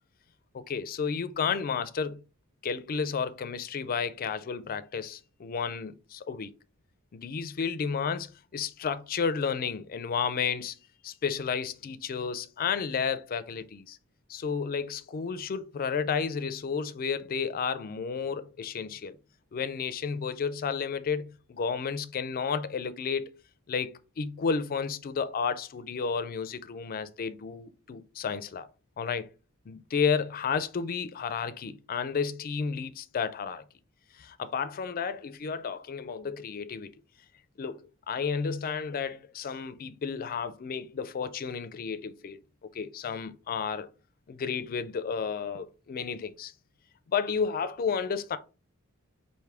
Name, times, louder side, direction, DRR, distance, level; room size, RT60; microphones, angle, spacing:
voice 1, 0.5-2.2 2.6-6.5 7.1-10.8 11.0-14.0 14.3-19.2 19.5-23.3 23.7-23.9 24.2-28.7 29.0-29.3 29.7-33.6 34.2-36.9 37.6-37.8 38.1-42.4 42.7-43.9 44.3-46.5 47.1-48.4, left 6 dB, 40° left, 0.4 m, -32 dB
4.8 x 2.6 x 3.4 m
head